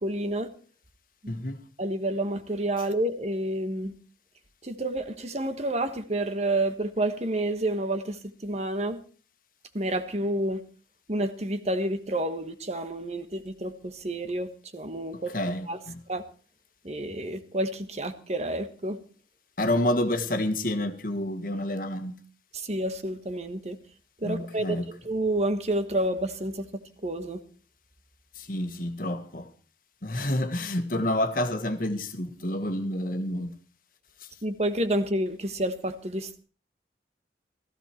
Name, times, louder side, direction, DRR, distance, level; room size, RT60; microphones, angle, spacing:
voice 1, 0.0-0.5 1.8-3.9 4.6-9.0 9.7-10.6 11.1-15.4 15.7-15.8 16.1-16.2 16.8-19.0 22.5-23.8 24.2-26.6 27.0-27.4 34.4-36.4, right 1 dB, 35° right, 1.4 m, -29 dB
voice 2, 1.3-1.6 15.3-16.0 19.6-22.1 24.2-24.8 28.4-29.5 30.0-33.6, left 1 dB, 50° left, 1.6 m, -29 dB
16.0 x 15.0 x 4.5 m
head